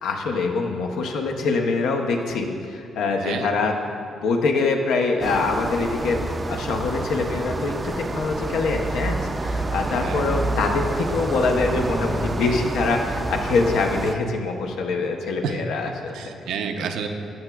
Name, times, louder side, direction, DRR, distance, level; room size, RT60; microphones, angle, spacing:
voice 1, 0.0-3.7 4.2-16.2, left 3 dB, 85° left, 2 dB, 0.7 m, -24 dB
voice 2, 3.2-3.5 10.0-10.3 15.4-17.1, right 6 dB, 80° right, 6 dB, 0.5 m, -30 dB
sound 1, 5.2-14.2, right 2 dB, 25° right, 0.4 m, -28 dB
13.5 x 6.0 x 2.3 m, 2.5 s
cardioid pair, 90°, 0 cm